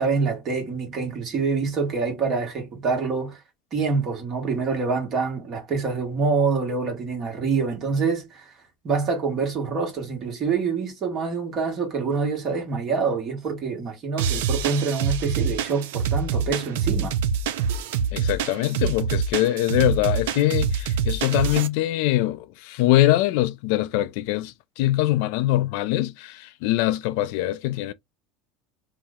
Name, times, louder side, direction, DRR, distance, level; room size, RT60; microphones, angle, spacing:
voice 1, 0.0-3.4 3.7-8.5 8.8-17.2, right 5 dB, 35° right, 1.2 m, -26 dB
sound 1, 14.2-21.7, right 6 dB, 85° right, 0.4 m, -25 dB
voice 2, 18.1-27.9, left 15 dB, 65° left, 0.4 m, -23 dB
2.7 x 2.1 x 3.5 m
supercardioid pair, 140°, 0 cm